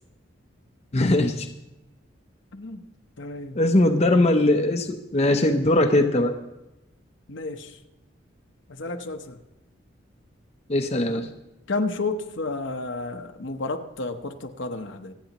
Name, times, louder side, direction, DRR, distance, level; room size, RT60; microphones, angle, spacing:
voice 1, 0.9-1.5 3.6-6.4 10.7-11.3, left 1 dB, 35° left, 5 dB, 0.7 m, -20 dB
voice 2, 2.5-2.9 3.2-3.6 7.3-7.8 8.7-9.4 11.0-11.3 11.7-15.1, left 3 dB, 75° left, 6 dB, 1.0 m, -31 dB
26.5 x 9.2 x 3.0 m, 0.93 s
head